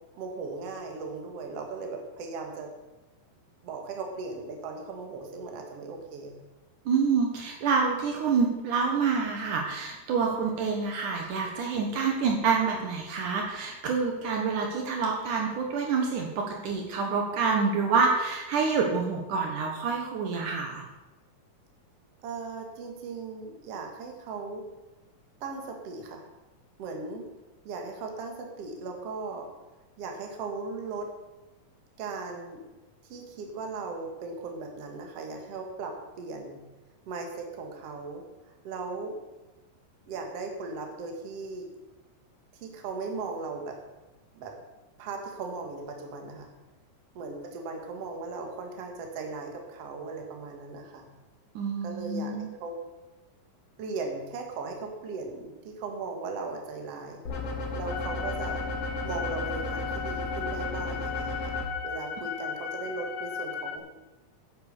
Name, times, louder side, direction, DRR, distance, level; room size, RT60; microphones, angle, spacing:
voice 1, 0.1-2.7 3.6-6.4 22.2-24.6 25.4-26.2 26.8-27.3 27.6-29.5 30.0-31.1 32.0-32.6 33.1-36.6 37.1-38.2 38.6-39.1 40.1-41.7 42.6-43.8 44.4-44.6 45.0-46.5 47.1-51.1 51.8-52.8 53.8-57.2 57.7-58.6 59.0-61.6 61.8-63.8, right 4 dB, 50° right, 2 dB, 2.4 m, -37 dB
voice 2, 6.9-20.8 51.5-52.5, right 5 dB, 70° right, 1 dB, 2.7 m, -27 dB
sound 1, 57.3-61.6, left 2 dB, 45° left, 2.4 m, -34 dB
sound 2, 57.9-63.8, left 6 dB, 75° left, 2.4 m, -36 dB
10.5 x 8.5 x 6.7 m, 1.1 s
omnidirectional pair, 4.1 m